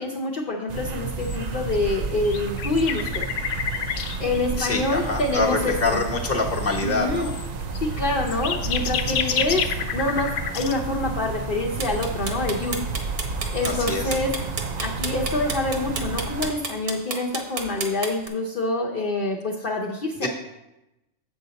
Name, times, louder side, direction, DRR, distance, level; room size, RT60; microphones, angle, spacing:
voice 1, 0.0-3.3 4.2-6.0 6.8-7.3 7.8-12.8 13.5-14.3 14.8-20.3, left 2 dB, 50° left, -2 dB, 0.8 m, -26 dB
sound 1, 0.7-16.5, right 4 dB, 55° right, 0.4 m, -31 dB
sound 2, 1.2-1.4 1.7-4.4 5.0-5.3 5.7-6.1 6.5-6.8 7.2-10.8 11.7-12.0 12.5-12.8 13.1-13.2 13.4-14.0, left 7 dB, 90° left, 1.0 m, -30 dB
voice 2, 4.6-7.3 13.6-14.2 20.2-20.3, left 3 dB, 15° left, 0 dB, 0.8 m, -25 dB
sound 3, 11.8-18.3, right 4 dB, 70° right, 1.3 m, -31 dB
7.5 x 6.3 x 4.0 m, 0.93 s
omnidirectional pair, 1.2 m